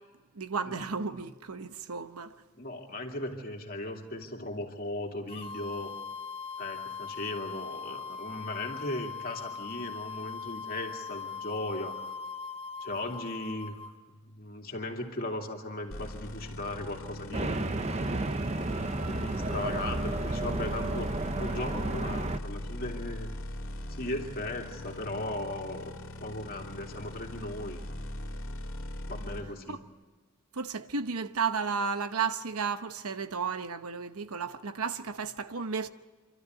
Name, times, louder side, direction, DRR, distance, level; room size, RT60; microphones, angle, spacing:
voice 1, 0.4-2.3 29.7-29.8 30.5-35.9, right 5 dB, 80° right, 1.0 m, -33 dB
voice 2, 2.6-5.9 6.6-12.0 12.8-13.8 14.1-17.7 18.7-21.1 21.4-23.3 23.8-25.9 26.2-27.8 29.1-29.8, left 1 dB, 40° left, 2.6 m, -37 dB
sound 1, 5.3-13.9, left 5 dB, 25° left, 1.1 m, -40 dB
sound 2, 15.9-29.4, left 1 dB, 60° left, 2.3 m, -40 dB
sound 3, 17.3-22.4, right 2 dB, 30° right, 0.7 m, -32 dB
27.5 x 13.0 x 9.3 m
head